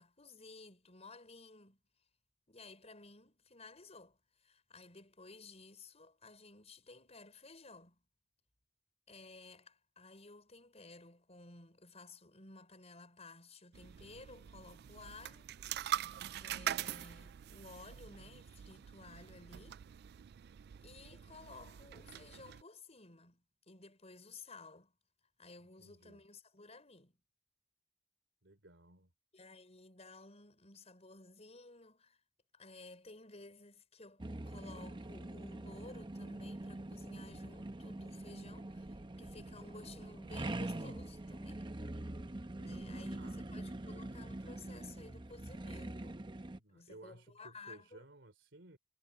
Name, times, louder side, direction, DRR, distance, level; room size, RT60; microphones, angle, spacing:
voice 1, 0.0-1.8 2.5-8.0 9.1-15.5 16.4-19.9 20.8-24.9 25.4-27.2 29.3-32.2 32.5-41.7 42.6-46.2 46.7-48.0, left 3 dB, 35° left, 5.8 m, -55 dB
sound 1, 13.7-22.6, right 11 dB, 60° right, 0.3 m, -44 dB
voice 2, 25.8-26.2 28.4-29.1 42.6-43.5 46.6-48.8, right 2 dB, 85° right, 3.2 m, -58 dB
sound 2, 34.2-46.6, right 1 dB, 25° right, 0.8 m, -44 dB
head